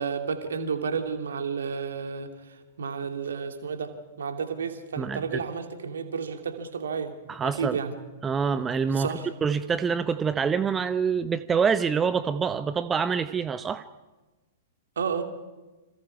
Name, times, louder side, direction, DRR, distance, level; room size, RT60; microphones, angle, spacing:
voice 1, 0.0-7.1 7.4-7.9 8.9-9.3 15.0-15.2, right 6 dB, 65° right, 6 dB, 2.9 m, -31 dB
voice 2, 7.3-7.8 8.2-9.1 9.4-13.8, right 6 dB, 15° right, 13 dB, 0.8 m, -26 dB
28.5 x 26.5 x 4.9 m, 1.2 s
figure-of-eight pair, 105°, 0 cm